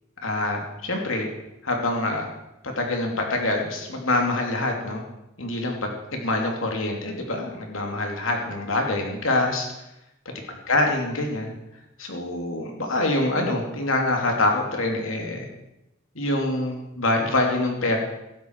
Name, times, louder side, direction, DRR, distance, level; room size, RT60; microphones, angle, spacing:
voice 1, 0.2-1.3 1.6-2.3 2.6-5.0 5.4-9.7 10.5-11.5 12.0-15.5 16.1-18.0, left 2 dB, 80° left, 2 dB, 2.9 m, -25 dB
16.0 x 12.0 x 4.8 m, 0.89 s
head